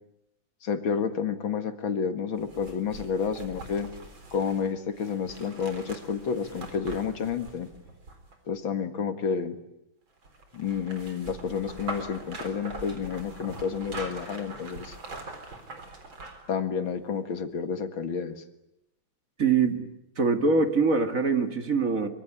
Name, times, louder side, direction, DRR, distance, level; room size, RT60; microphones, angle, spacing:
voice 1, 0.6-3.9 4.3-7.7 8.5-9.6 10.5-15.0 16.5-18.4, left 6 dB, 75° left, 9 dB, 2.6 m, -30 dB
sound 1, 2.4-8.6 10.2-16.5 16.9-17.0, right 2 dB, 75° right, 4.8 m, -42 dB
voice 2, 19.4-19.9 20.2-22.1, right 4 dB, 45° right, 7 dB, 2.2 m, -23 dB
25.0 x 24.0 x 9.8 m, 0.84 s
omnidirectional pair, 2.2 m